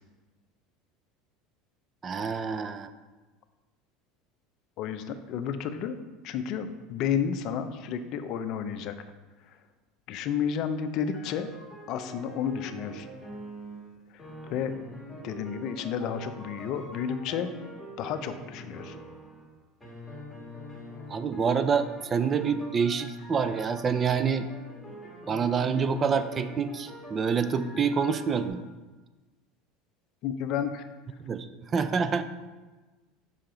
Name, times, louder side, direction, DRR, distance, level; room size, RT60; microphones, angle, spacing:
voice 1, 2.0-2.9 21.1-24.5 25.3-28.6 31.2-31.5 31.7-32.2, right 6 dB, 30° right, 11 dB, 0.5 m, -27 dB
voice 2, 4.8-6.0 6.2-8.9 9.5-9.6 10.1-11.5 11.9-13.1 14.1-14.2 14.5-14.8 15.2-17.5 18.0-19.0 30.2-30.9, left 8 dB, 55° left, 9 dB, 0.6 m, -31 dB
sound 1, 11.0-13.9 14.2-19.5 19.8-28.5, equal, 5° left, 2.0 m, -45 dB
7.3 x 5.7 x 3.9 m, 1.2 s
supercardioid pair, 120°, 0 cm